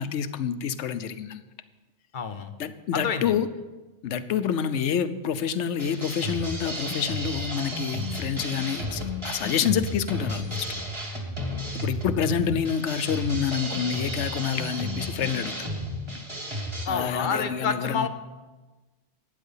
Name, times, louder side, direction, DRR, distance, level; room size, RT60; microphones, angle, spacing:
voice 1, 0.0-1.4 2.6-3.5 4.0-10.7 11.7-15.7 16.9-18.1, left 8 dB, 85° left, 12 dB, 1.0 m, -28 dB
voice 2, 2.1-2.5 2.9-3.4 16.9-18.1, left 5 dB, 50° left, 8 dB, 0.9 m, -28 dB
sound 1, 5.8-16.9, equal, 25° right, 1.8 m, -33 dB
12.0 x 9.1 x 5.6 m, 1.2 s
omnidirectional pair, 1.2 m